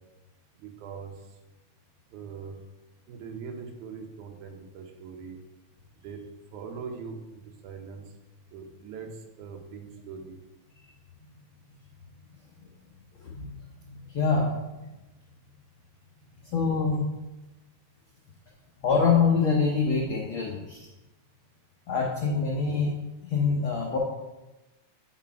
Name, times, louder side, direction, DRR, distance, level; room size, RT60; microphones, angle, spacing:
voice 1, 0.6-1.1 2.1-2.5 3.1-5.4 6.0-6.2 6.5-8.0 8.5-9.1 9.4-10.4, right 6 dB, 80° right, 4 dB, 2.2 m, -41 dB
voice 2, 13.9-14.5 16.5-17.0 18.8-20.9 21.9-22.9 23.3-24.0, left 5 dB, 85° left, -2 dB, 1.1 m, -25 dB
8.0 x 4.1 x 4.5 m, 1.1 s
omnidirectional pair, 3.4 m